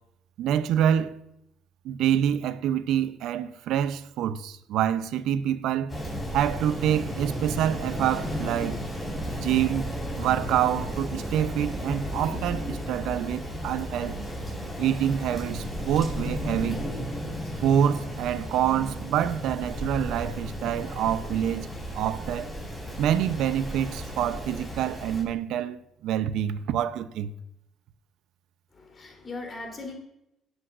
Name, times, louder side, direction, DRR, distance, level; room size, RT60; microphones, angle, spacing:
voice 1, 0.4-1.1 1.8-6.0 6.3-8.8 9.4-9.9 10.2-14.1 14.8-16.9 17.6-21.7 21.9-22.5 23.0-27.3, right 10 dB, 75° right, 0.6 m, -26 dB
Rain, 5.9-25.2, equal, 10° left, 4.6 m, -34 dB
voice 2, 28.7-29.9, left 3 dB, 35° left, 3.4 m, -39 dB
19.0 x 8.0 x 2.5 m
supercardioid pair, 75°, 0 cm